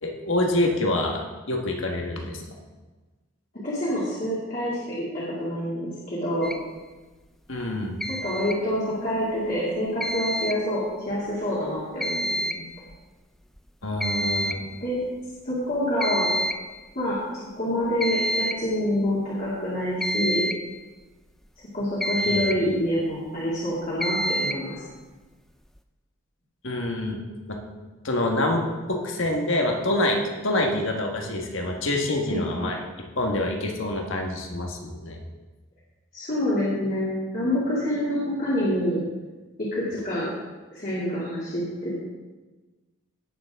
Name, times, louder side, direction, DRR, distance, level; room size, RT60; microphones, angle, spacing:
voice 1, 0.0-2.5 7.5-8.0 13.8-14.6 22.3-22.4 26.6-27.2 27.5-27.6 28.0-35.2, left 1 dB, 65° left, 1 dB, 1.5 m, -26 dB
voice 2, 3.5-6.5 8.1-10.8 11.1-12.6 14.6-15.0 15.4-16.3 16.9-20.4 21.7-24.8 32.3-32.4 36.1-39.0 39.7-40.3 40.7-42.0, left 1 dB, 40° left, -8 dB, 2.5 m, -27 dB
sound 1, 6.4-6.6 8.0-8.6 10.0-10.6 12.0-12.6 12.9-13.0 13.6-13.7 14.0-14.6 16.0-16.6 18.0-18.7 20.0-20.7 22.0-22.7 24.0-24.7, right 1 dB, ahead, 0.3 m, -27 dB
17.0 x 7.0 x 3.7 m, 1.2 s
head